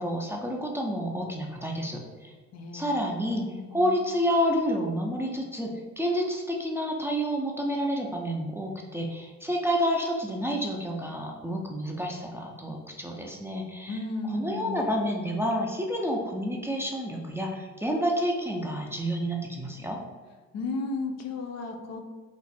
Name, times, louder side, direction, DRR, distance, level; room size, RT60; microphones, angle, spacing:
voice 1, 0.0-2.3 2.7-3.5 3.7-14.0 14.3-20.0, equal, 10° right, -1 dB, 0.4 m, -29 dB
voice 2, 2.5-4.1 13.9-14.9 20.5-22.0, left 3 dB, 60° left, 3 dB, 0.5 m, -35 dB
2.5 x 2.1 x 4.0 m, 1.4 s
cardioid pair, 90°, 30 cm